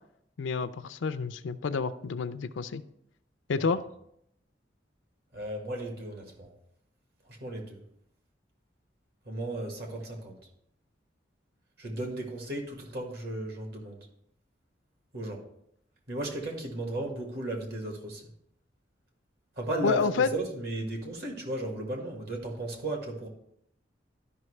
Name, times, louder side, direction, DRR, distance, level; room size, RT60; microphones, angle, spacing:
voice 1, 0.4-2.8 3.5-3.8 19.8-20.3, left 5 dB, 85° left, 13 dB, 0.4 m, -29 dB
voice 2, 5.3-6.5 7.3-7.8 9.2-10.4 11.8-14.1 15.1-15.4 16.1-18.2 19.5-23.3, right 1 dB, 60° right, 2 dB, 1.7 m, -35 dB
12.0 x 5.5 x 3.2 m, 0.75 s
head